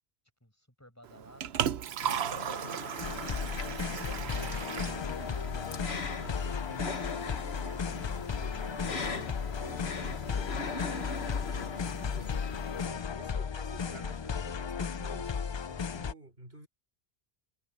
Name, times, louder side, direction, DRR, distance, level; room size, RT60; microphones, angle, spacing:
voice 1, 0.4-5.5, equal, 15° left, 7.6 m, -59 dB
Liquid, 1.0-6.0, right 9 dB, 90° right, 1.0 m, -36 dB
sound 1, 2.0-12.9, left 4 dB, 85° left, 1.8 m, -41 dB
sound 2, 3.0-16.1, left 6 dB, 45° left, 0.4 m, -35 dB
voice 2, 4.2-4.6 5.4-7.1 7.6-10.5 11.4-16.7, right 2 dB, 70° right, 4.8 m, -51 dB
omnidirectional pair, 1.0 m